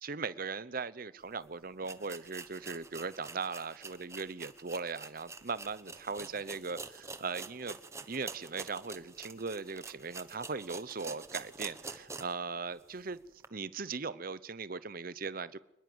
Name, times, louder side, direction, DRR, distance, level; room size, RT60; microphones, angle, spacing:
voice 1, 0.0-7.8 8.1-13.2 13.5-15.6, right 4 dB, 45° right, 16 dB, 0.8 m, -39 dB
sound 1, 1.3-1.4 1.8-12.4 12.8-12.9 13.4-13.5, right 4 dB, 15° right, 1.1 m, -46 dB
24.0 x 21.0 x 8.0 m, 0.90 s
head